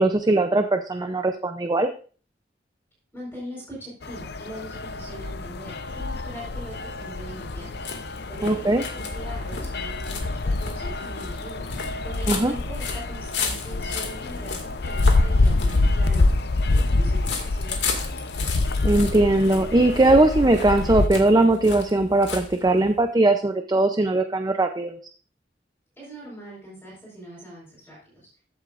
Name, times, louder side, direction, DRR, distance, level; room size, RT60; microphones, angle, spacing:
voice 1, 0.0-1.9 8.4-8.8 12.3-12.5 18.8-24.9, right 2 dB, 20° right, 6 dB, 0.6 m, -20 dB
voice 2, 3.1-7.7 8.3-11.7 12.0-16.4 16.7-18.1 26.0-28.3, right 1 dB, 10° left, -7 dB, 4.8 m, -41 dB
sound 1, 4.0-21.1, left 2 dB, 65° left, 0.6 m, -26 dB
sound 2, 6.6-23.0, left 4 dB, 85° left, 2.2 m, -35 dB
14.5 x 7.9 x 2.5 m, 0.40 s
head